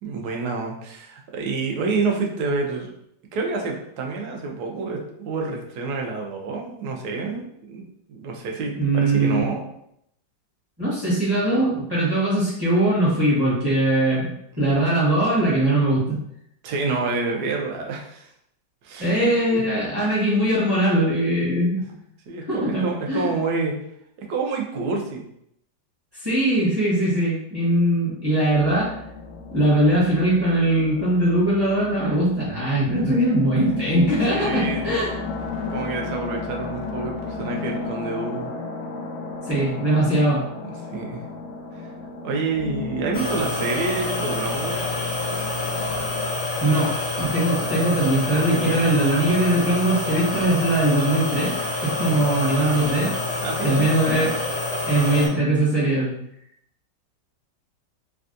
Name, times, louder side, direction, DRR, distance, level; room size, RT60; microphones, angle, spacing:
voice 1, 0.0-2.9 3.3-7.8 8.1-9.7 16.6-18.3 18.8-19.6 21.9-22.0 22.3-23.8 24.2-25.2 34.3-35.1 35.7-38.5 40.6-41.2 41.8-41.9 42.2-44.8 52.0-52.2 53.4-53.9, right 4 dB, 70° right, 1 dB, 1.1 m, -28 dB
voice 2, 8.8-9.4 10.8-14.3 14.6-16.2 19.0-21.8 22.5-23.3 26.2-28.9 29.5-35.1 39.4-40.4 46.6-51.5 51.8-53.1 53.6-54.3 54.8-56.1, right 1 dB, 20° right, -9 dB, 0.8 m, -21 dB
sound 1, 28.5-46.3, left 4 dB, 90° left, 1.3 m, -34 dB
sound 2, 43.1-55.3, left 2 dB, 65° left, 0.7 m, -27 dB
3.4 x 2.3 x 2.5 m, 0.74 s
omnidirectional pair, 2.0 m